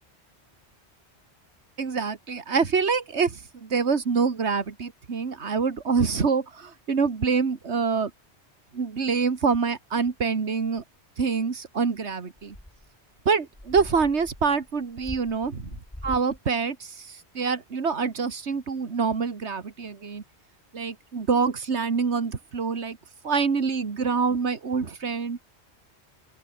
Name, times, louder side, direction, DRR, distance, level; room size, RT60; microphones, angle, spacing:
voice 1, 1.8-8.1 8.7-10.8 11.2-12.6 13.3-15.8 16.0-20.2 20.7-23.0 23.2-25.4, right 5 dB, 80° right, 2.1 m, -26 dB
sound 1, 10.8-10.9 12.4-12.9 13.3-13.4 13.5-16.4, left 1 dB, 10° left, 2.5 m, -41 dB
open air
omnidirectional pair, 1.1 m